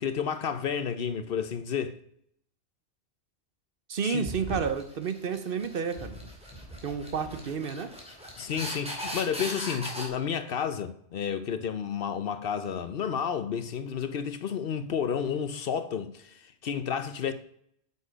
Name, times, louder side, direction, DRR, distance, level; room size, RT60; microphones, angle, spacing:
voice 1, 0.0-2.0 4.0-4.2 8.4-17.3, left 7 dB, 60° left, 0.8 m, -31 dB
voice 2, 3.9-6.2 6.8-7.9, right 6 dB, 55° right, 1.0 m, -31 dB
sound 1, 4.2-10.1, equal, 5° right, 2.5 m, -38 dB
8.1 x 7.0 x 5.1 m
omnidirectional pair, 1.1 m